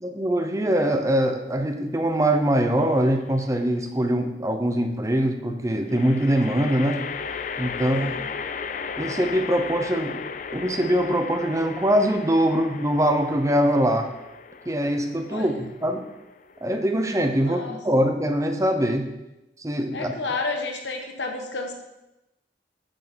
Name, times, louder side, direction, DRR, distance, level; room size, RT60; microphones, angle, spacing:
voice 1, 0.0-7.0 7.6-8.2 9.0-10.2 10.5-14.1 14.7-16.1 16.6-19.1 19.6-20.1, equal, 15° right, 6 dB, 0.7 m, -23 dB
sound 1, 2.8-3.4 5.9-17.2, left 6 dB, 45° left, 0.4 m, -36 dB
voice 2, 7.8-8.3 15.3-15.5 17.4-17.8 19.9-21.7, left 3 dB, 80° left, 2 dB, 1.4 m, -31 dB
8.7 x 4.6 x 6.1 m, 0.95 s
head